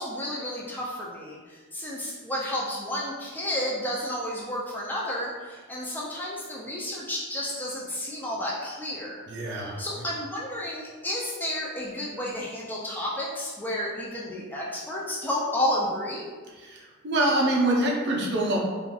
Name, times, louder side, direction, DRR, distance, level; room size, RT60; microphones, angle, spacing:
voice 1, 0.0-9.2 9.8-16.3, left 1 dB, 10° left, -5 dB, 0.4 m, -31 dB
voice 2, 9.3-9.8 16.6-18.6, right 1 dB, 55° right, -2 dB, 0.6 m, -25 dB
3.6 x 2.5 x 2.3 m, 1.4 s
head